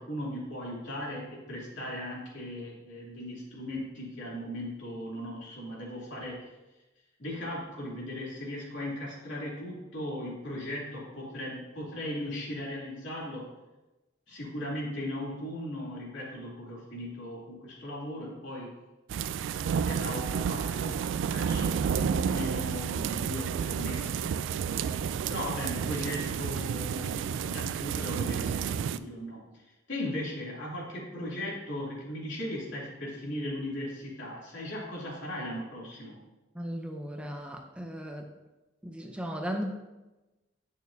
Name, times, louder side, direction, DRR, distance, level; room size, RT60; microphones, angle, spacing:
voice 1, 0.0-6.4 7.2-13.5 14.3-18.7 19.6-21.0 21.3-24.2 25.3-29.6 29.9-36.2, left 1 dB, 80° left, -5 dB, 2.7 m, -38 dB
sound 1, 19.1-29.0, right 7 dB, 85° right, 0.3 m, -31 dB
voice 2, 36.5-38.3 38.8-39.6, equal, 5° right, 3 dB, 0.6 m, -36 dB
9.2 x 6.5 x 2.7 m, 1.1 s
head